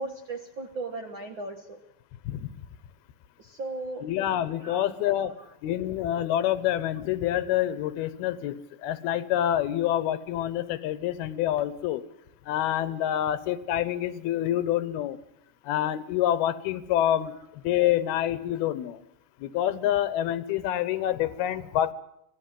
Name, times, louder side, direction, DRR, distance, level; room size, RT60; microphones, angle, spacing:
voice 1, 0.0-1.8 3.4-4.1 4.6-4.9 5.2-5.3, right 2 dB, 65° right, 5 dB, 1.2 m, -36 dB
voice 2, 4.0-5.3 5.6-12.0 12.5-15.2 15.6-19.0 19.4-21.9, left 12 dB, 85° left, 15 dB, 3.0 m, -27 dB
25.5 x 17.5 x 7.7 m, 0.77 s
omnidirectional pair, 4.3 m